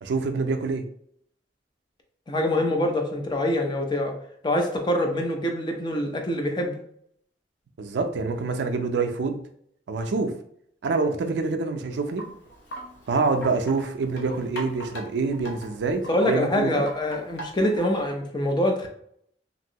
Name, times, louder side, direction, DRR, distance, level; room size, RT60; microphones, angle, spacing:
voice 1, 0.0-0.8 7.8-9.4 9.9-10.3 10.8-12.3 13.1-16.8, right 4 dB, 75° right, 6 dB, 0.4 m, -26 dB
voice 2, 2.3-4.1 4.4-6.7 16.1-18.9, left 1 dB, 25° left, 3 dB, 0.5 m, -25 dB
Wind chime, 11.9-18.1, right 1 dB, 80° left, 0.8 m, -41 dB
2.9 x 2.6 x 2.7 m, 0.67 s
head